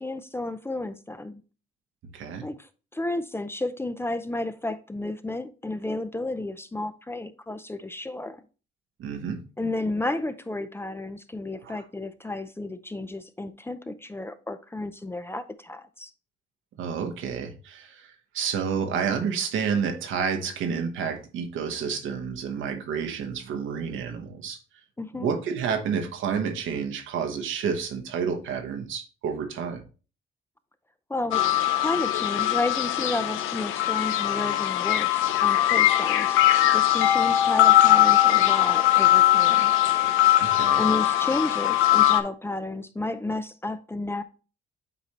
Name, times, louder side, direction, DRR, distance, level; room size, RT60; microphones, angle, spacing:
voice 1, 0.0-1.4 2.4-8.4 9.6-16.1 25.0-25.3 31.1-31.5 31.8-36.4 36.7-39.7 40.5-44.2, left 2 dB, 10° left, 0.5 m, -32 dB
voice 2, 2.1-2.5 9.0-9.4 11.6-11.8 16.8-24.6 25.2-29.8 40.4-40.8, right 6 dB, 80° right, 1.1 m, -30 dB
sound 1, 31.3-42.2, left 13 dB, 90° left, 0.6 m, -21 dB
8.0 x 4.3 x 3.0 m
cardioid pair, 90°, 20 cm